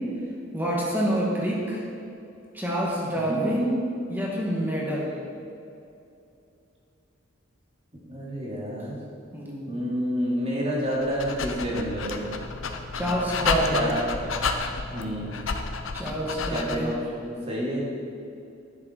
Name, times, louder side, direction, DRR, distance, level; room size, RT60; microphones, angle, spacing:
voice 1, 0.5-1.8 2.5-3.7 4.1-5.1 9.3-9.8 12.9-13.9 15.9-16.9, right 1 dB, 10° right, -4 dB, 2.0 m, -27 dB
voice 2, 3.2-3.5 8.0-9.0 9.7-12.3 13.7-14.6 14.9-15.3 16.5-17.9, equal, 30° right, -5 dB, 2.7 m, -29 dB
Dog, 10.9-17.0, left 4 dB, 75° left, 0.8 m, -31 dB
10.5 x 10.0 x 4.6 m, 2.6 s
head